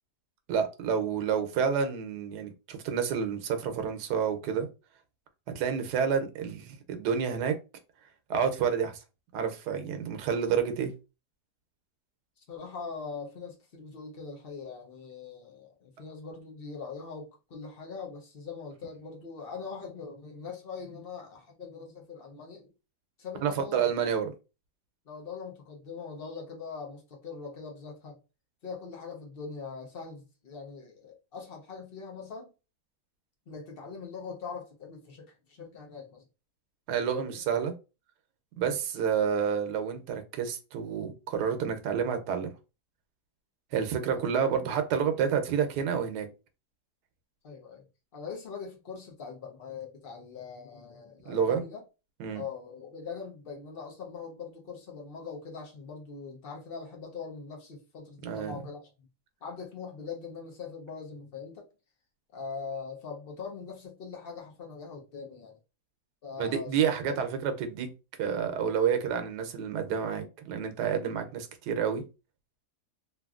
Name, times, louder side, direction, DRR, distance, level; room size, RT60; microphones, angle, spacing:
voice 1, 0.5-4.7 5.5-7.6 8.3-9.0 9.3-10.9 23.4-24.3 36.9-37.8 38.6-42.5 43.7-46.3 51.3-51.6 52.2-52.4 58.2-58.6 66.4-67.9 68.2-72.0, right 7 dB, 85° right, 1.2 m, -29 dB
voice 2, 12.4-22.7 23.2-23.8 25.1-28.2 28.6-32.5 33.5-36.2 37.1-37.3 44.1-44.2 47.4-47.9 48.1-51.8 52.3-58.9 59.4-61.7 62.3-65.6 66.2-67.2, left 5 dB, 50° left, 0.7 m, -42 dB
3.0 x 2.5 x 2.4 m
omnidirectional pair, 1.7 m